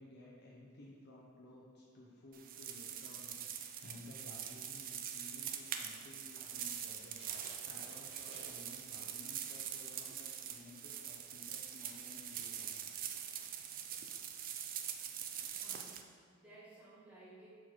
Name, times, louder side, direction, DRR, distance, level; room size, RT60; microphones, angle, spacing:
voice 1, 0.0-12.7 13.1-13.9, left 2 dB, 50° left, -4 dB, 0.7 m, -56 dB
sound 1, 2.3-16.0, right 9 dB, 40° right, 0.4 m, -44 dB
sound 2, 5.4-9.6 10.0-12.3, equal, 55° right, 1.6 m, -60 dB
voice 2, 15.5-17.5, right 2 dB, 5° right, -9 dB, 1.3 m, -58 dB
5.9 x 4.4 x 4.5 m, 2.1 s
head